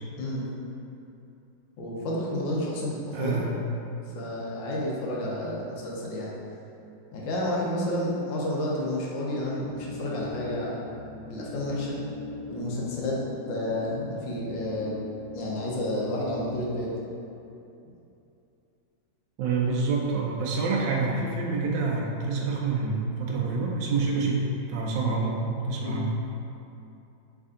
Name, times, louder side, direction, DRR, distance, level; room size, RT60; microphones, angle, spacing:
voice 1, 1.8-3.4 4.1-6.3 7.1-10.8 11.3-12.0 12.5-13.2 13.5-15.0 15.3-16.9 25.8-26.1, left 1 dB, 75° left, -4 dB, 1.4 m, -30 dB
voice 2, 3.1-3.6 19.4-26.1, right 4 dB, 75° right, -1 dB, 1.2 m, -27 dB
sound 1, 9.5-16.6, left 2 dB, 50° right, 1.3 m, -40 dB
3.5 x 3.3 x 3.7 m, 2.8 s
omnidirectional pair, 2.1 m